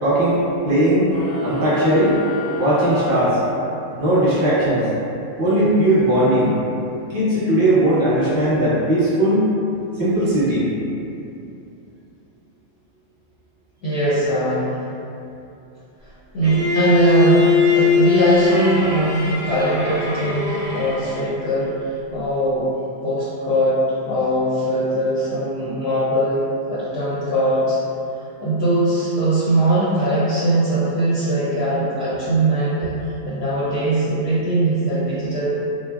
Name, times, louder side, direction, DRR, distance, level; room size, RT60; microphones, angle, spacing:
voice 1, 0.0-1.1 1.4-2.1 2.6-3.4 4.0-4.9 5.4-6.6 7.1-9.5 10.0-10.7, right 1 dB, 25° right, -11 dB, 0.8 m, -18 dB
sound 1, 1.1-4.0, left 3 dB, 85° left, 0.3 m, -30 dB
voice 2, 13.8-14.8 16.3-22.7 23.0-23.8 24.1-27.8 28.4-35.5, right 1 dB, 60° left, -9 dB, 0.7 m, -20 dB
Bowed string instrument, 16.4-21.3, left 4 dB, 55° right, 0.7 m, -20 dB
3.2 x 2.0 x 2.4 m, 2.7 s
omnidirectional pair, 1.4 m